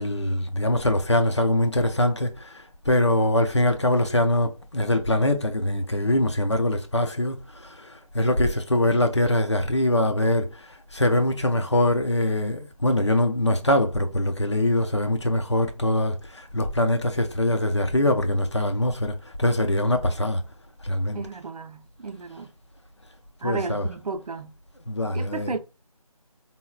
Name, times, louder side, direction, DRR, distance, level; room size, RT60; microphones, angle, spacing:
voice 1, 0.0-2.5 2.9-7.4 8.1-10.5 10.9-19.1 19.4-20.4 20.8-21.2 23.4-23.9 24.9-25.6, left 1 dB, 50° left, 0.5 m, -23 dB
voice 2, 21.1-22.5 23.4-24.6 25.1-25.6, right 4 dB, 85° right, 0.5 m, -33 dB
4.1 x 2.0 x 2.3 m
figure-of-eight pair, 180°, 19 cm